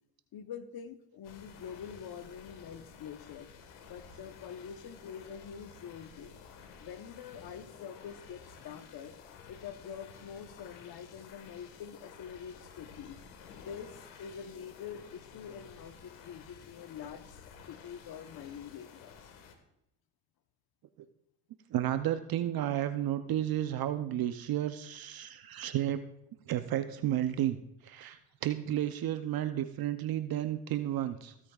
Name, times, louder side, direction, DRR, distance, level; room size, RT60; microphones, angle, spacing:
voice 1, 0.3-3.5 3.9-6.3 6.8-9.2 9.5-13.2 13.6-19.2, left 8 dB, 50° left, 9 dB, 1.1 m, -45 dB
sound 1, 1.2-19.5, left 6 dB, 75° left, 1.7 m, -53 dB
voice 2, 21.7-26.0 26.5-27.6 27.8-31.5, right 12 dB, 50° right, 10 dB, 0.7 m, -32 dB
16.0 x 8.5 x 2.4 m, 0.78 s
hypercardioid pair, 65°, 45 cm